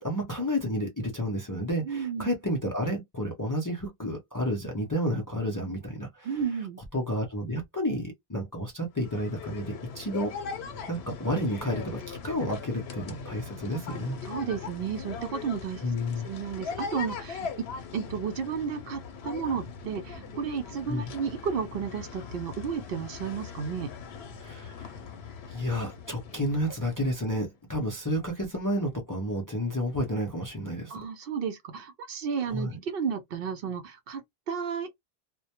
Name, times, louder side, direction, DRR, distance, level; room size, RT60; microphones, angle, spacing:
voice 1, 0.0-6.4 6.9-10.3 10.9-14.2 15.8-16.3 20.9-21.1 24.4-25.0 25.5-31.0 32.4-32.8, equal, 30° left, 0.4 m, -31 dB
voice 2, 1.8-2.3 6.2-6.8 14.2-15.8 16.2-17.7 17.9-23.9 30.9-34.9, right 6 dB, 70° right, 0.7 m, -33 dB
sound 1, 9.0-27.4, left 6 dB, 85° left, 0.9 m, -40 dB
2.1 x 2.1 x 2.7 m
omnidirectional pair, 1.0 m